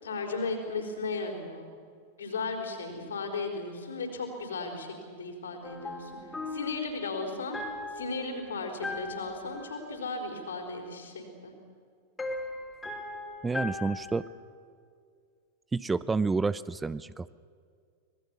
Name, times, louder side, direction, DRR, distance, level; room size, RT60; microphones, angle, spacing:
voice 1, 0.0-1.7 2.2-6.1 6.5-11.5, left 3 dB, 70° left, 3 dB, 4.6 m, -36 dB
sound 1, 5.6-10.8 12.2-14.3, left 2 dB, 10° left, 3.7 m, -39 dB
voice 2, 13.4-14.2 15.7-17.3, right 4 dB, 10° right, 17 dB, 0.5 m, -29 dB
25.5 x 21.0 x 7.1 m, 2.2 s
figure-of-eight pair, 90°, 0 cm